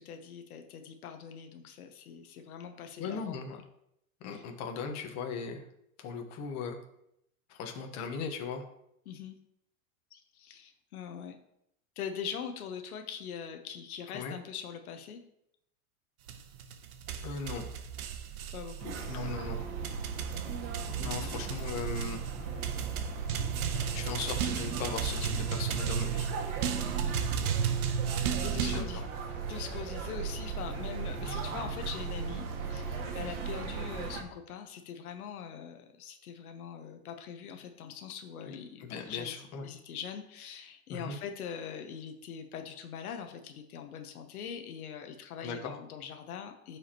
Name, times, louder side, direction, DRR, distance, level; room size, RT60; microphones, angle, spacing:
voice 1, 0.0-3.6 4.3-4.4 9.1-9.4 10.1-11.3 12.0-15.2 18.5-19.0 27.0-27.3 28.1-29.0 29.5-46.8, left 7 dB, 85° left, 6 dB, 1.1 m, -42 dB
voice 2, 3.0-3.6 4.2-5.6 6.0-6.8 7.5-8.6 14.1-14.3 17.2-17.7 19.1-19.6 21.0-22.2 23.9-26.3 28.6-29.0 38.5-39.6 40.9-41.2 45.4-45.8, left 5 dB, 40° left, 3 dB, 1.4 m, -38 dB
sound 1, 16.3-28.8, right 8 dB, 85° right, 1.0 m, -34 dB
sound 2, 18.8-34.2, right 5 dB, 55° right, 1.7 m, -37 dB
12.0 x 4.9 x 3.0 m, 0.77 s
supercardioid pair, 130°, 43 cm